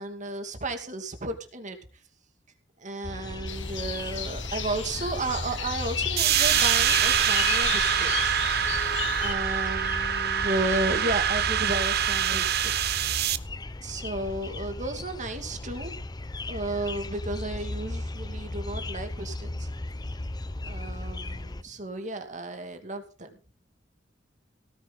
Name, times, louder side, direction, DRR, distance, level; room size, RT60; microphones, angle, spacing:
voice 1, 0.0-1.8 2.8-8.3 9.1-13.0 13.8-15.9 16.5-19.7 20.6-23.4, right 2 dB, 40° right, 6 dB, 2.6 m, -33 dB
sound 1, 3.0-21.6, left 2 dB, 20° left, 0.8 m, -36 dB
sound 2, 3.5-9.3, left 8 dB, 75° left, 1.9 m, -33 dB
sound 3, 6.2-13.4, right 9 dB, 55° right, 0.9 m, -25 dB
18.0 x 10.0 x 4.2 m, 0.36 s
head